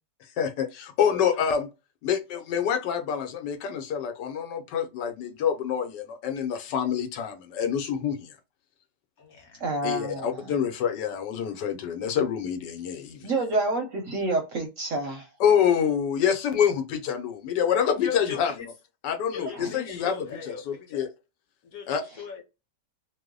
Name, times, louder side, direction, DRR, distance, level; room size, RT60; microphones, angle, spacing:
voice 1, 0.4-1.7 2.0-8.3 9.8-13.3 15.4-18.5 19.0-21.1 21.9-22.0, left 8 dB, 80° left, 1.3 m, -26 dB
voice 2, 1.1-1.4 9.2-9.6 17.9-18.7 19.3-21.1 21.6-22.4, left 6 dB, 60° left, 1.2 m, -39 dB
voice 3, 9.6-10.5 13.2-15.3 19.5-19.7, right 2 dB, 65° right, 0.8 m, -28 dB
3.0 x 2.0 x 3.6 m
omnidirectional pair, 1.8 m